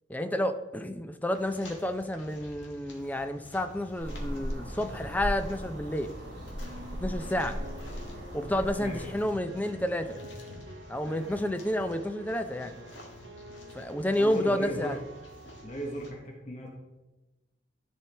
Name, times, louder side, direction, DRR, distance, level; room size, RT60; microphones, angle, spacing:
voice 1, 0.1-6.1 7.0-7.6 8.3-10.2 10.9-12.8 13.7-15.0, left 1 dB, 10° left, 8 dB, 0.5 m, -30 dB
sound 1, 1.3-16.1, left 1 dB, 75° left, 1.5 m, -50 dB
sound 2, 4.0-9.1, equal, 65° right, 2.4 m, -37 dB
sound 3, 5.9-16.0, equal, 80° right, 0.7 m, -48 dB
voice 2, 8.8-9.1 14.2-15.0 15.6-16.7, equal, 40° left, 0 dB, 1.0 m, -36 dB
13.0 x 4.6 x 3.4 m, 1.1 s
head